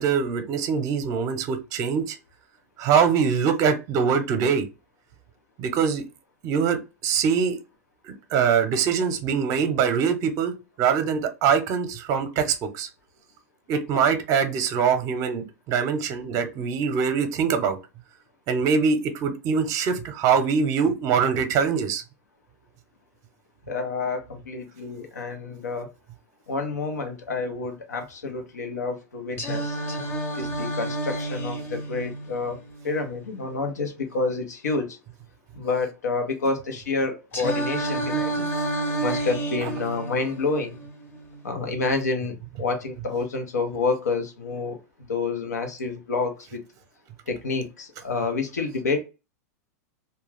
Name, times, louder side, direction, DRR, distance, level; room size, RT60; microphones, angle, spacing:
voice 1, 0.0-2.2 2.8-4.7 5.6-6.0 6.4-7.6 8.3-10.5 10.8-12.9 13.7-17.8 18.5-22.0 39.6-39.7, right 6 dB, 40° right, 0.7 m, -23 dB
voice 2, 23.7-25.9 26.5-29.8 30.3-32.6 32.8-35.0 35.5-38.5 39.0-40.8 41.4-44.8 45.1-46.6 47.3-49.0, left 3 dB, 90° left, 0.8 m, -28 dB
Singing, 29.4-33.4 37.3-41.4, right 2 dB, 25° left, 0.8 m, -30 dB
2.3 x 2.2 x 3.2 m
hypercardioid pair, 110°, 9 cm